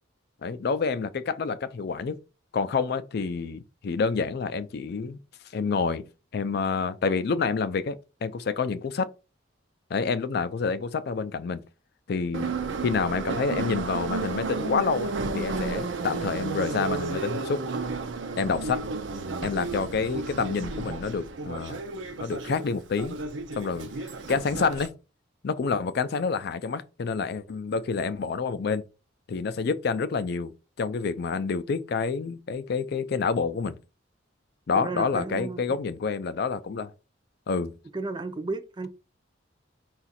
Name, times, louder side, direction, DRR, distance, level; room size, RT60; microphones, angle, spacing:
voice 1, 0.4-2.2 2.5-5.2 5.5-6.0 6.3-9.1 9.9-11.6 12.1-12.5 12.8-17.6 18.4-18.8 19.4-21.8 22.2-23.2 23.6-23.9 24.3-24.9 25.4-28.8 29.3-30.5 30.8-33.8 34.7-36.9 37.5-37.7, left 5 dB, 60° left, 0.4 m, -28 dB
Subway metro underground, 12.3-24.9, right 4 dB, 75° right, 0.6 m, -32 dB
voice 2, 34.8-35.6 37.9-38.9, right 3 dB, 25° right, 0.5 m, -33 dB
4.9 x 2.4 x 4.1 m
head